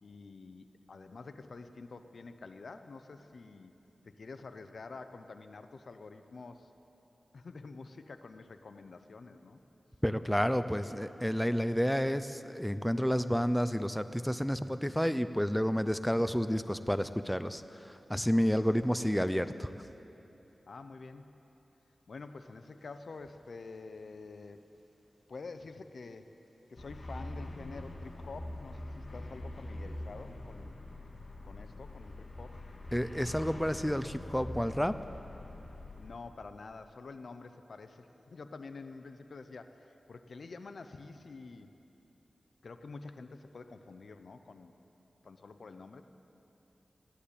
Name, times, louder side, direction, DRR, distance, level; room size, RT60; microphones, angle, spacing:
voice 1, 0.0-3.7 4.0-6.7 7.3-9.6 20.7-21.3 22.1-24.6 25.3-26.3 26.7-30.7 31.4-32.6 36.0-41.7 42.6-44.7 45.2-46.0, left 4 dB, 70° left, 9 dB, 0.8 m, -48 dB
voice 2, 10.0-19.7 32.9-35.0, equal, 5° left, 11 dB, 0.5 m, -30 dB
sound 1, 26.8-36.1, left 1 dB, 55° left, 2.0 m, -44 dB
15.0 x 11.5 x 8.5 m, 2.9 s
cardioid pair, 55°, 0 cm